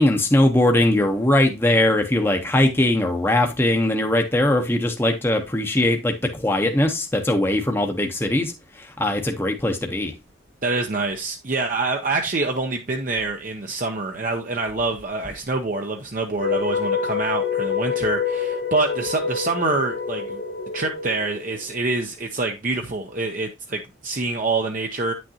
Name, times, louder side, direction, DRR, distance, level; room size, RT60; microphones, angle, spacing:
voice 1, 0.0-8.5 8.8-10.1, left 1 dB, 10° left, 0.8 m, -20 dB
voice 2, 10.6-20.4 20.7-25.1, right 3 dB, 40° right, 0.7 m, -26 dB
sound 1, 16.4-21.6, left 6 dB, 85° left, 1.8 m, -26 dB
9.2 x 6.2 x 2.8 m
head